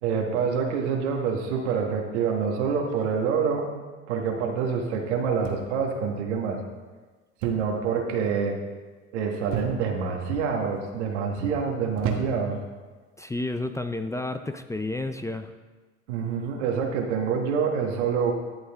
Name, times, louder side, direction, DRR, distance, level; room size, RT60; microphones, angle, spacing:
voice 1, 0.0-3.7 4.1-6.6 7.4-8.6 9.1-12.6 16.1-18.3, right 6 dB, 90° right, 2 dB, 1.5 m, -26 dB
sound 1, 5.4-6.0 7.4-7.8 8.1-8.5 9.5-10.1 10.8-11.2 12.0-12.6 13.6-13.8, right 7 dB, 65° right, 1.3 m, -33 dB
voice 2, 13.2-15.5, left 2 dB, 10° left, 8 dB, 0.5 m, -31 dB
12.0 x 7.8 x 3.5 m, 1.3 s
supercardioid pair, 80°, 34 cm